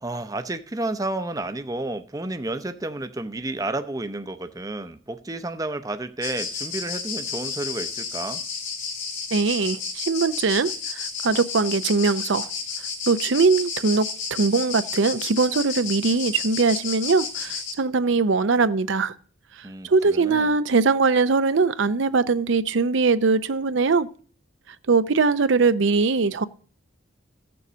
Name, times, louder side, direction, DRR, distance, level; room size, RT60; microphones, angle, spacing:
voice 1, 0.0-8.4 19.6-20.5, right 2 dB, 20° right, 0.6 m, -31 dB
sound 1, 6.2-17.7, left 5 dB, 80° left, 2.8 m, -32 dB
voice 2, 9.3-12.5 13.1-19.1 19.8-24.1 24.9-26.4, right 4 dB, 70° right, 0.6 m, -21 dB
15.0 x 6.9 x 6.2 m
head